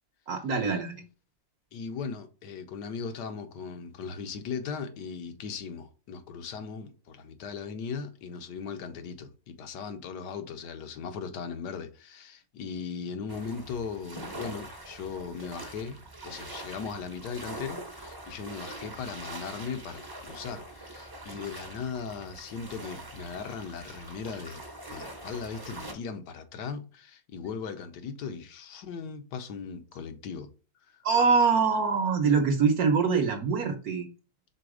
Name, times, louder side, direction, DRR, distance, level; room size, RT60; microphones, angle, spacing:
voice 1, 0.3-1.0 31.0-34.1, right 5 dB, 65° right, 1.1 m, -24 dB
voice 2, 1.7-30.5 30.9-31.0, left 5 dB, 75° left, 1.4 m, -38 dB
sound 1, 13.3-25.9, right 1 dB, 20° right, 0.6 m, -43 dB
5.1 x 3.9 x 4.8 m
omnidirectional pair, 1.9 m